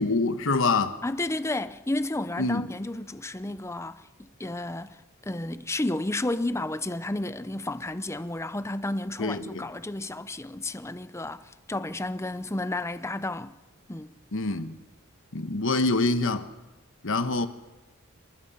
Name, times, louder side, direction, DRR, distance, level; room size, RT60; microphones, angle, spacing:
voice 1, 0.0-1.0 2.4-2.7 9.2-9.7 14.3-14.7 15.3-16.5 17.0-17.5, left 3 dB, 60° left, 1.3 m, -25 dB
voice 2, 1.0-13.5 13.9-14.1, left 2 dB, 10° left, 0.7 m, -32 dB
28.5 x 19.5 x 5.8 m
head